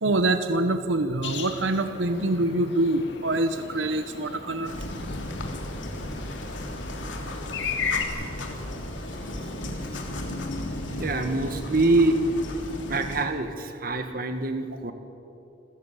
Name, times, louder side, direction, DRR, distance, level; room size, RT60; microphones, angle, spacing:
voice 1, 0.0-4.7 7.3-7.4 9.6-9.8 10.3-10.4, right 2 dB, 85° right, 8 dB, 1.0 m, -25 dB
sound 1, 1.2-8.0, left 5 dB, 65° left, 2.1 m, -36 dB
sound 2, 4.6-13.2, left 1 dB, 85° left, 3.0 m, -34 dB
voice 2, 11.0-12.2 12.9-14.9, right 2 dB, 50° right, 7 dB, 1.7 m, -25 dB
27.5 x 14.0 x 8.9 m, 2.9 s
head